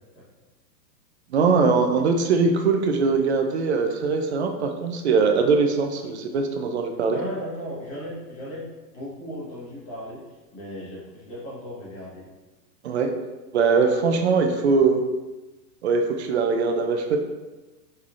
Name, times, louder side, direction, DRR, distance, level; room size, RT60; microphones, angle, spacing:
voice 1, 1.3-7.2 12.8-13.1 13.5-15.0 15.8-17.2, right 4 dB, 45° right, 4 dB, 0.4 m, -21 dB
voice 2, 7.1-10.2 10.5-12.2, equal, 25° left, -6 dB, 1.4 m, -36 dB
5.7 x 3.3 x 2.4 m, 1.1 s
hypercardioid pair, 155°, 50 cm